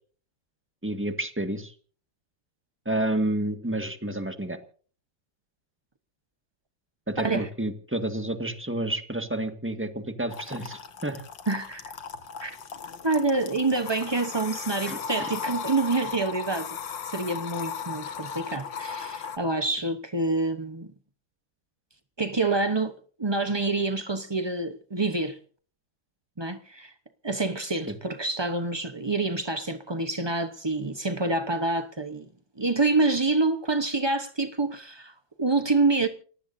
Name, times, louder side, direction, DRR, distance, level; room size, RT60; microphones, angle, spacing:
voice 1, 0.8-1.7 2.8-4.6 7.1-11.2 14.9-15.3 27.9-28.0, right 1 dB, 5° right, 1.5 m, -30 dB
voice 2, 7.2-7.5 11.5-11.9 12.4-12.6 13.0-16.8 17.0-20.9 22.2-22.9 23.2-25.4 26.4-26.9 27.2-32.3 32.6-36.1, right 3 dB, 35° right, 0.4 m, -27 dB
sound 1, 10.3-19.4, left 6 dB, 70° left, 2.1 m, -37 dB
29.0 x 15.0 x 2.7 m
omnidirectional pair, 2.1 m